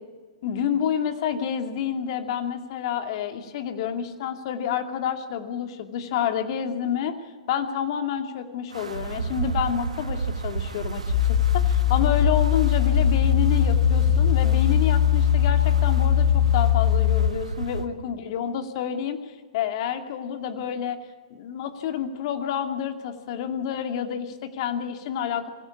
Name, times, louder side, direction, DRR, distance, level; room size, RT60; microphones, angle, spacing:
voice 1, 0.4-7.2 7.5-21.0 21.3-25.5, left 8 dB, 50° left, 6 dB, 2.4 m, -29 dB
Wind, 8.7-17.9, right 4 dB, 85° right, 1.8 m, -30 dB
sound 1, 11.1-17.3, left 13 dB, 35° left, 1.0 m, -20 dB
22.5 x 16.5 x 8.4 m, 1.5 s
hypercardioid pair, 115°, 3 cm